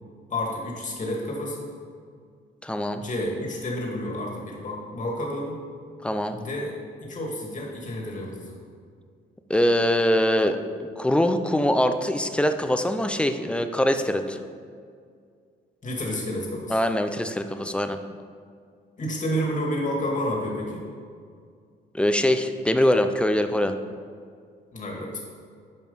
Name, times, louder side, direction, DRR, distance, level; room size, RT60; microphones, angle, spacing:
voice 1, 0.3-1.7 3.0-5.6 6.4-6.7 7.0-8.6 15.8-16.8 19.0-20.8 24.7-25.2, left 1 dB, 40° left, -1 dB, 2.3 m, -30 dB
voice 2, 2.6-3.0 6.0-6.4 9.5-14.4 16.7-18.0 21.9-23.7, left 1 dB, 5° left, 8 dB, 0.6 m, -23 dB
9.4 x 5.3 x 5.6 m, 2.1 s
cardioid pair, 90°, 20 cm